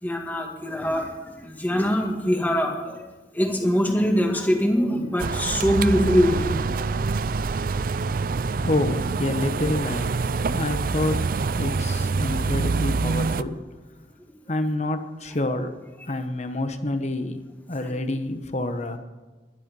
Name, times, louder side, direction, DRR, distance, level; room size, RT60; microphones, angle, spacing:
voice 1, 0.0-3.0 3.3-6.9 7.6-7.7 17.8-17.9, equal, 10° left, 1 dB, 2.2 m, -23 dB
sound 1, 5.2-13.4, right 4 dB, 50° right, 0.4 m, -26 dB
voice 2, 8.6-13.6 14.5-15.7 16.1-17.4 17.7-19.0, left 2 dB, 40° left, 8 dB, 1.2 m, -28 dB
21.0 x 12.0 x 5.5 m, 1.3 s
head